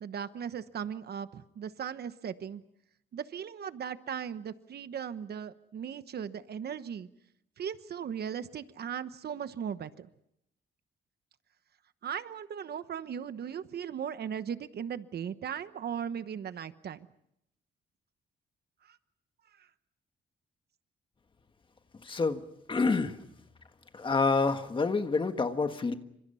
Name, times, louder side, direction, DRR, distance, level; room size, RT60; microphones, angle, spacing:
voice 1, 0.0-2.6 3.1-7.1 7.6-10.1 12.0-17.1 18.9-19.0 19.6-19.7, right 8 dB, 55° right, 12 dB, 1.1 m, -38 dB
voice 2, 22.0-22.4 22.7-23.2 23.9-25.9, left 4 dB, 25° left, 8 dB, 1.5 m, -27 dB
28.5 x 26.0 x 5.6 m, 0.78 s
wide cardioid pair, 165°, 20 cm